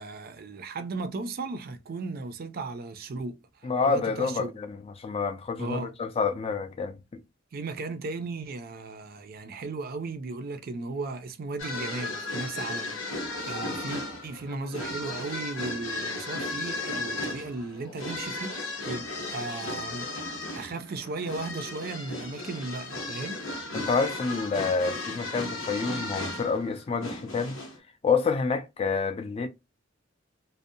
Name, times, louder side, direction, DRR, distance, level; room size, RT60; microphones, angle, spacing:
voice 1, 0.0-4.5 5.6-5.9 7.5-20.1 20.5-23.5, right 3 dB, 50° right, 0.4 m, -36 dB
voice 2, 3.6-7.2 23.7-27.6 28.0-29.5, left 5 dB, 30° left, 0.3 m, -28 dB
sound 1, 11.6-27.8, left 2 dB, 90° left, 0.8 m, -35 dB
2.6 x 2.0 x 2.6 m
head